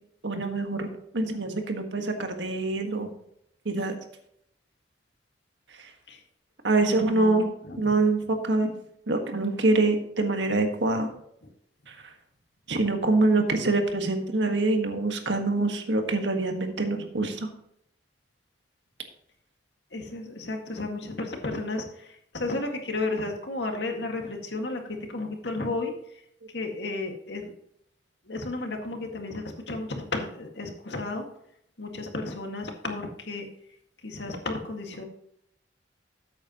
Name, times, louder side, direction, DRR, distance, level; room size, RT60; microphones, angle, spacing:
voice 1, 0.2-0.9 1.1-3.1 3.6-4.0 6.6-7.5 7.8-8.7 9.1-11.1 12.7-17.5, right 2 dB, 85° right, 5 dB, 1.6 m, -25 dB
voice 2, 6.8-7.9 19.9-24.8 25.1-25.9 26.5-27.5 28.3-31.3 31.8-33.5 34.0-35.0, left 2 dB, 70° left, 3 dB, 1.9 m, -33 dB
13.0 x 8.5 x 3.0 m, 0.73 s
head